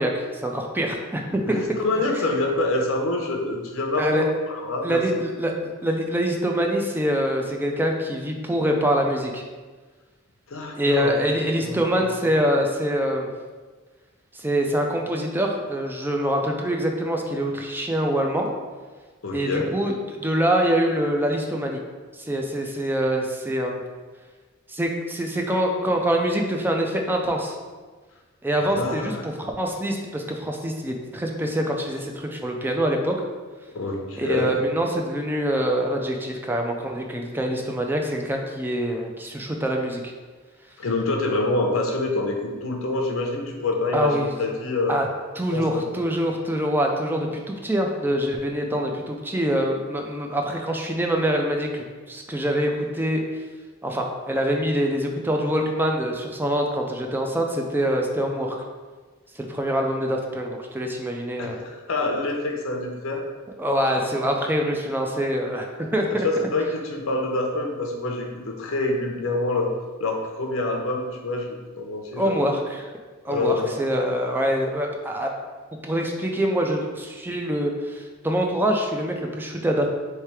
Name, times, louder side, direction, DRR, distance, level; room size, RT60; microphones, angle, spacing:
voice 1, 0.0-1.6 4.0-4.3 4.8-5.5 5.8-9.4 10.8-13.3 14.3-18.5 19.3-21.8 22.2-23.8 24.7-27.6 28.4-33.2 34.2-40.0 43.9-44.3 44.9-45.1 45.4-53.2 53.8-58.6 59.4-61.6 63.6-66.3 72.2-72.8 73.2-75.3 75.8-79.9, equal, 10° right, 2 dB, 0.4 m, -25 dB
voice 2, 1.5-5.0 10.5-11.1 11.6-12.1 19.2-19.7 28.7-29.2 33.7-34.6 40.8-45.0 45.5-46.0 61.4-63.2 66.2-69.7 70.0-71.5 71.8-72.3 73.3-73.7, left 2 dB, 75° left, 1 dB, 0.7 m, -26 dB
3.2 x 3.2 x 4.7 m, 1.4 s
head